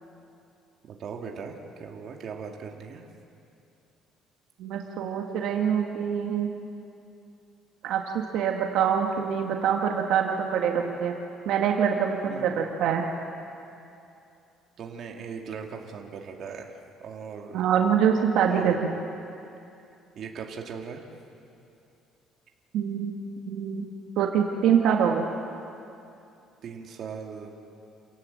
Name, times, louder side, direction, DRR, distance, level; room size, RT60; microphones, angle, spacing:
voice 1, 0.9-3.1 12.2-12.6 14.8-17.6 18.5-18.7 20.2-21.0 26.6-27.5, right 6 dB, 45° right, 1 dB, 2.2 m, -39 dB
voice 2, 4.6-6.5 7.8-11.1 11.4-13.0 17.5-18.9 22.7-23.1 23.4-23.9 24.2-25.3, right 8 dB, 70° right, 2 dB, 1.7 m, -25 dB
28.5 x 18.0 x 7.6 m, 2.7 s
cardioid pair, 170°, 0 cm